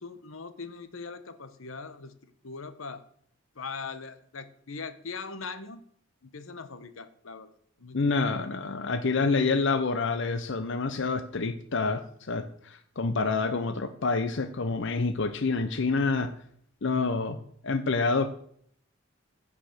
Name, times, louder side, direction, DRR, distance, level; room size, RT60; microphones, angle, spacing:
voice 1, 0.0-3.1 3.5-5.8 6.2-8.4, left 4 dB, 90° left, 11 dB, 1.0 m, -41 dB
voice 2, 7.9-16.3 16.8-17.4 17.6-18.3, left 4 dB, 65° left, 9 dB, 0.8 m, -27 dB
15.0 x 5.0 x 6.6 m, 0.64 s
head